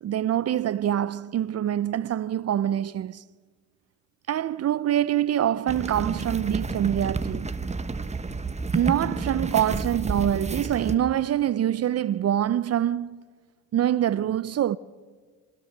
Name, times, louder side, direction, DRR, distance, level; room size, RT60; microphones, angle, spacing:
voice 1, 0.0-3.2 4.3-7.5 8.7-13.2 13.7-14.8, right 11 dB, 40° right, 0.6 m, -25 dB
sound 1, 5.7-10.9, right 3 dB, 15° right, 1.3 m, -30 dB
27.0 x 17.5 x 6.6 m
supercardioid pair, 75°, 39 cm